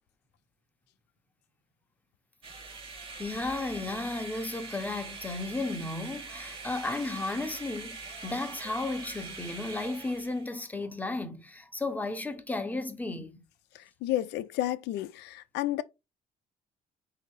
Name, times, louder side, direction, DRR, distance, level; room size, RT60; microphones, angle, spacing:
sound 1, 2.4-10.5, right 4 dB, 35° right, 1.1 m, -43 dB
voice 1, 3.2-13.4, left 2 dB, 10° left, 0.8 m, -34 dB
voice 2, 13.7-15.8, left 14 dB, 80° left, 0.5 m, -31 dB
3.9 x 2.8 x 4.6 m
cardioid pair, 110°, 17 cm